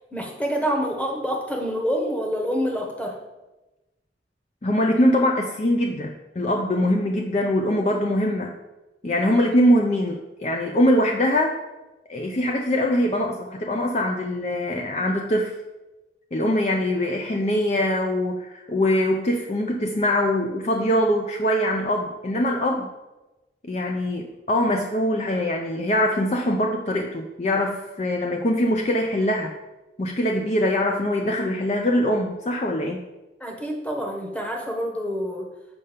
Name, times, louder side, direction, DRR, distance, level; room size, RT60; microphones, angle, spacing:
voice 1, 0.1-3.2 33.4-35.5, equal, 5° left, 1 dB, 1.1 m, -27 dB
voice 2, 4.6-8.5 9.0-11.6 12.1-15.5 16.3-22.9 23.6-29.5 30.0-33.0, left 1 dB, 40° left, 1 dB, 0.5 m, -23 dB
7.2 x 5.5 x 5.1 m, 1.1 s
head